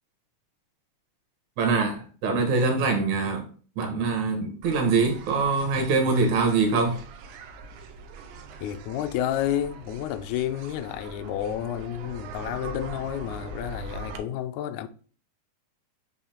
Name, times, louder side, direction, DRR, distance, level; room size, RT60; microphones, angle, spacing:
voice 1, 1.6-3.4 3.8-7.0, right 4 dB, 70° right, 2.5 m, -24 dB
sound 1, 4.6-14.2, right 3 dB, 90° right, 2.2 m, -42 dB
voice 2, 8.6-14.9, left 11 dB, 80° left, 1.8 m, -30 dB
8.1 x 2.8 x 4.3 m
omnidirectional pair, 3.6 m